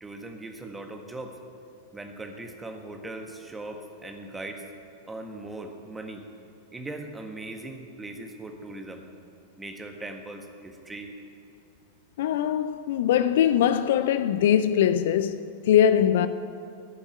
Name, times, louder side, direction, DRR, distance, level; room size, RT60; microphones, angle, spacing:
voice 1, 0.0-1.4 1.9-4.6 5.1-6.2 6.7-9.0 9.6-11.1, right 2 dB, 10° right, 1.6 m, -39 dB
voice 2, 12.2-16.3, left 9 dB, 55° left, 0.5 m, -22 dB
15.0 x 7.1 x 9.0 m
figure-of-eight pair, 90°, 0 cm